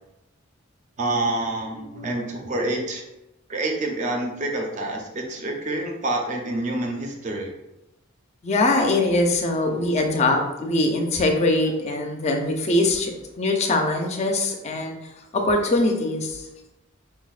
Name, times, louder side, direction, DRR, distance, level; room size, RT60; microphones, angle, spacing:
voice 1, 1.0-3.0 3.5-7.5, right 2 dB, 35° right, 1 dB, 0.5 m, -27 dB
voice 2, 8.4-15.0 15.3-16.5, left 2 dB, 30° left, 2 dB, 0.4 m, -22 dB
4.5 x 2.0 x 2.3 m, 0.93 s
head